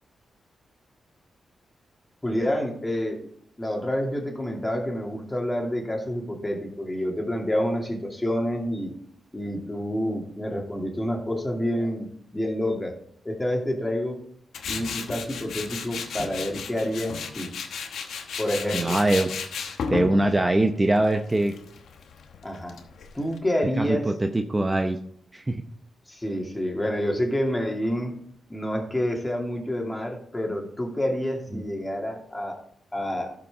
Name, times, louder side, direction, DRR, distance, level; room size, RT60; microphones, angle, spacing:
voice 1, 2.2-3.3 3.6-8.9 9.3-12.1 12.3-12.9 13.2-14.2 14.7-17.6 18.4-19.0 22.4-22.8 23.1-24.1 26.1-28.1 28.5-32.6 32.9-33.3, equal, 20° left, 1 dB, 2.5 m, -28 dB
Tools, 14.5-23.4, left 5 dB, 80° left, 1.0 m, -34 dB
voice 2, 18.7-19.3 19.9-21.5 23.8-25.0 25.3-25.6 31.5-31.6, right 1 dB, 25° right, 6 dB, 0.7 m, -23 dB
12.5 x 6.1 x 3.6 m, 0.67 s
cardioid pair, 55°, 0 cm